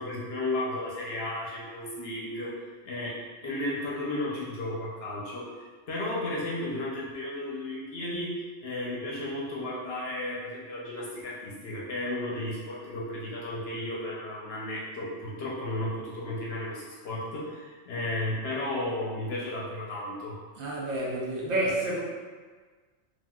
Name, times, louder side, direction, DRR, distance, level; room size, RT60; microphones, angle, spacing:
voice 1, 0.0-2.6 2.8-5.5 5.9-8.4 8.6-20.4, left 1 dB, 60° left, -5 dB, 0.8 m, -34 dB
voice 2, 20.6-22.0, right 1 dB, 65° right, -4 dB, 0.9 m, -29 dB
3.7 x 2.4 x 2.2 m, 1.4 s
omnidirectional pair, 1.3 m